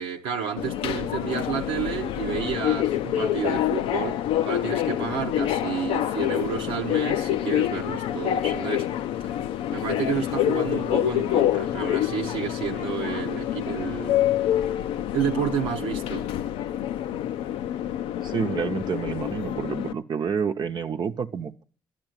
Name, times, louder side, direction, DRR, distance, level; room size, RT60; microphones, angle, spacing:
voice 1, 0.0-8.9 9.7-14.3 15.1-16.3, right 8 dB, 90° right, 0.9 m, -31 dB
Subway metro underground, 0.6-19.9, left 12 dB, 80° left, 0.5 m, -27 dB
voice 2, 18.2-21.6, right 6 dB, 50° right, 0.8 m, -29 dB
11.0 x 7.5 x 9.1 m
supercardioid pair, 60°, 9 cm